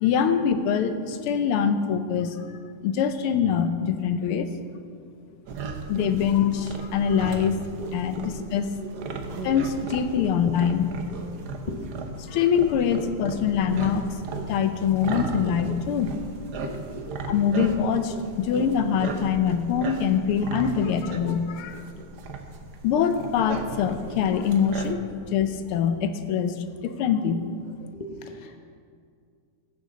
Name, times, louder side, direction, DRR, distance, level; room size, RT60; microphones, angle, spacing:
voice 1, 0.0-2.4 2.8-4.5 5.9-7.6 7.9-8.7 9.4-10.9 12.2-14.1 14.5-16.2 17.3-21.8 22.8-25.0 25.3-26.6 26.8-27.4, left 7 dB, 80° left, 9 dB, 1.6 m, -24 dB
sound 1, 5.5-24.9, right 4 dB, 60° right, 1.3 m, -36 dB
voice 2, 16.6-17.4 27.9-28.6, left 1 dB, 45° left, 4 dB, 0.5 m, -38 dB
14.5 x 12.0 x 3.9 m, 2.2 s
omnidirectional pair, 2.4 m